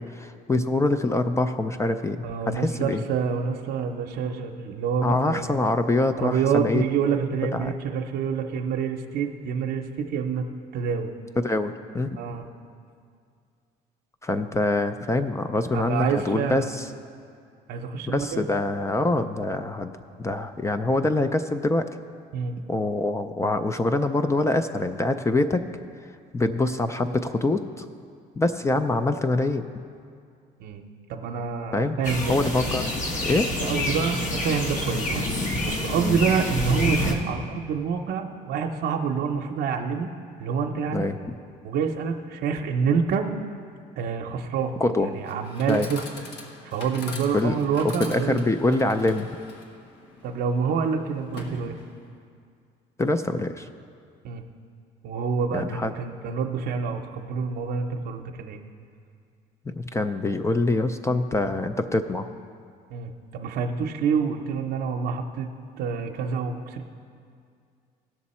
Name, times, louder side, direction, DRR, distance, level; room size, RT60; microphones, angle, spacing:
voice 1, 0.0-3.0 5.0-6.8 7.5-7.7 11.4-12.1 14.2-16.9 18.1-19.9 20.2-21.9 22.7-25.6 26.3-27.9 28.4-29.6 31.7-32.0 32.3-33.5 36.0-36.2 40.9-41.2 44.8-45.1 45.7-45.9 47.3-47.6 47.8-49.3 53.0-53.7 55.5-55.9 59.7-62.3, left 2 dB, 15° left, 8 dB, 0.4 m, -25 dB
voice 2, 2.2-5.5 6.1-10.5 10.7-11.1 12.2-12.5 15.7-16.7 17.7-18.5 22.3-22.5 30.6-30.8 31.1-32.4 33.6-35.3 35.6-40.1 40.4-41.1 41.6-43.3 44.0-44.8 45.0-46.0 46.6-48.8 50.2-51.8 54.2-54.4 55.0-58.6 62.9-65.5 65.8-66.9, right 6 dB, 70° right, 3 dB, 0.7 m, -27 dB
sound 1, 32.0-37.2, left 1 dB, 45° left, 1.2 m, -27 dB
Chatter / Coin (dropping), 45.1-52.1, left 3 dB, 80° left, 1.3 m, -42 dB
17.5 x 6.0 x 4.2 m, 2.2 s
cardioid pair, 110°, 17 cm